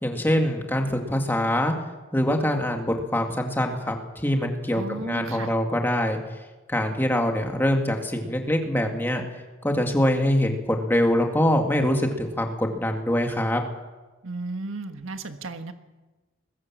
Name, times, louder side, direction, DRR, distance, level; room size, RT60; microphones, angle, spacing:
voice 1, 0.0-1.7 2.1-6.2 6.7-9.2 9.6-13.6, left 1 dB, 10° left, 3 dB, 2.0 m, -24 dB
voice 2, 4.7-5.5 14.2-15.7, right 3 dB, 80° right, 7 dB, 1.5 m, -34 dB
21.0 x 16.5 x 7.5 m, 1.2 s
head